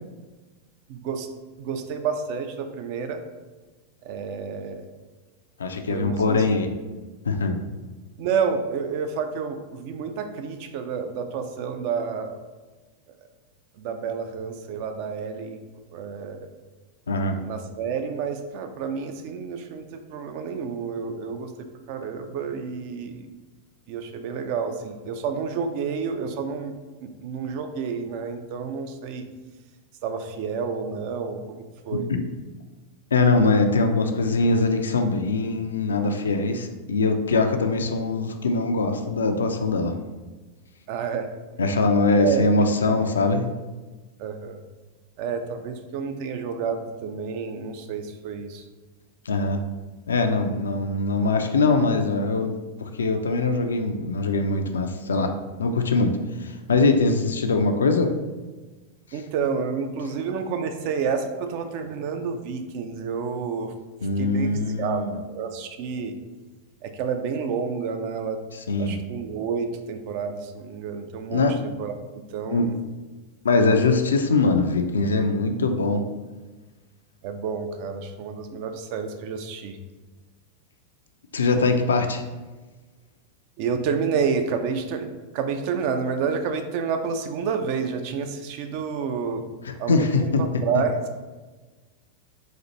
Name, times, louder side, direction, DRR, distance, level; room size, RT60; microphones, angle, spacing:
voice 1, 0.9-1.3 1.6-3.2 4.0-4.8 5.9-6.4 8.2-12.3 13.8-15.6 15.9-16.5 17.4-23.3 23.9-26.7 27.0-29.2 30.0-32.1 40.9-41.3 42.1-42.5 42.9-43.0 44.2-44.6 45.2-48.6 59.1-63.7 64.2-65.0 65.3-66.1 66.8-68.4 68.8-71.5 71.8-72.8 77.2-79.8 83.6-89.4 89.8-91.0, right 6 dB, 45° right, 6 dB, 0.4 m, -29 dB
voice 2, 5.6-6.7 7.3-7.6 17.1-17.4 31.9-32.2 33.1-39.9 41.6-43.5 49.3-49.6 50.1-52.5 52.8-55.3 55.6-58.1 64.0-65.2 68.5-69.0 71.3-71.5 72.5-72.7 73.4-76.0 81.3-82.2 89.6-90.4, left 3 dB, 70° left, 6 dB, 0.3 m, -22 dB
4.0 x 2.4 x 2.9 m, 1.2 s
figure-of-eight pair, 90°, 0 cm